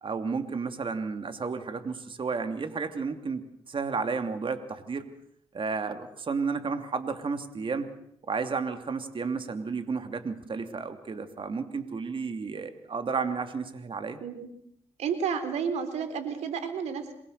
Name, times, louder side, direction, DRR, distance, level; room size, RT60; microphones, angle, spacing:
voice 1, 0.0-5.1 5.5-7.9 8.3-14.2, right 5 dB, 50° right, 8 dB, 2.8 m, -32 dB
voice 2, 15.0-17.1, right 6 dB, 85° right, 9 dB, 3.5 m, -31 dB
27.5 x 21.5 x 6.7 m, 0.72 s
cardioid pair, 65°, 11 cm